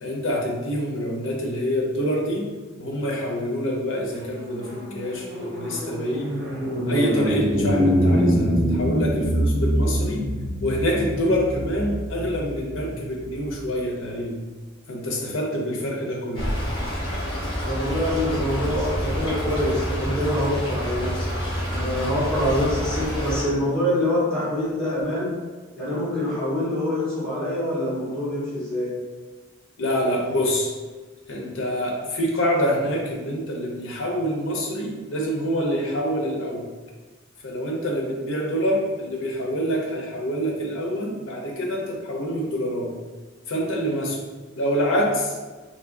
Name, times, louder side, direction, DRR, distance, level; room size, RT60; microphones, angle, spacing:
voice 1, 0.0-2.5 2.8-6.3 6.8-10.2 10.6-14.4 14.9-16.5 29.8-30.7 31.3-36.7 37.4-42.9 43.5-44.2 44.6-45.4, equal, 70° left, -1 dB, 0.7 m, -26 dB
sound 1, 4.3-13.8, equal, 50° right, 0.9 m, -25 dB
Stream / Trickle dribble, 16.3-23.4, equal, 25° left, 1.2 m, -28 dB
voice 2, 17.6-21.3 21.7-25.3 25.8-28.9, left 1 dB, 5° left, -12 dB, 1.5 m, -25 dB
3.4 x 2.7 x 2.6 m, 1.3 s
head